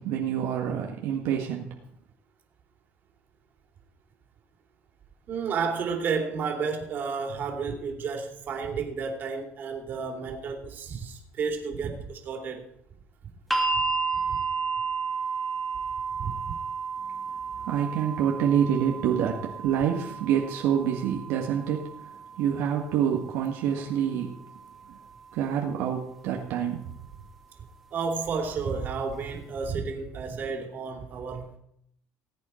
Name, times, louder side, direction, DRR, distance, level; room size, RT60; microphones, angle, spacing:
voice 1, 0.0-1.7 17.6-21.9 22.4-24.3 25.3-26.9, right 9 dB, 80° right, 0 dB, 1.8 m, -27 dB
voice 2, 5.3-12.7 16.2-16.5 27.9-31.5, right 5 dB, 45° right, 3 dB, 2.9 m, -31 dB
sound 1, 13.5-25.6 26.7-26.8, right 4 dB, 5° left, 2.2 m, -33 dB
18.5 x 8.3 x 4.5 m, 0.72 s
cardioid pair, 115°, 4 cm